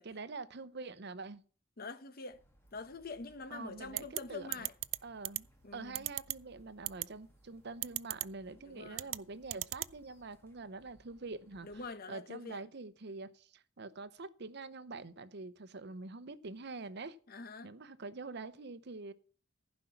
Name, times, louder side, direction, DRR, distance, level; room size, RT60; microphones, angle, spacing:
voice 1, 0.0-1.4 3.5-4.7 5.0-5.5 5.7-11.8 12.1-17.2 17.6-19.1, right 3 dB, 60° right, 0.7 m, -45 dB
voice 2, 1.8-2.4 2.7-4.7 5.6-6.1 8.6-9.1 11.6-12.6 17.3-17.7, left 4 dB, 50° left, 0.9 m, -45 dB
sound 1, 2.3-11.9, right 1 dB, 15° left, 1.9 m, -66 dB
sound 2, 4.0-4.2 4.5-5.0 5.2-5.4 5.9-6.3 6.9-7.0 7.8-8.2 8.9-9.2 9.5-9.9, right 18 dB, 85° right, 0.4 m, -34 dB
15.0 x 5.3 x 5.8 m
head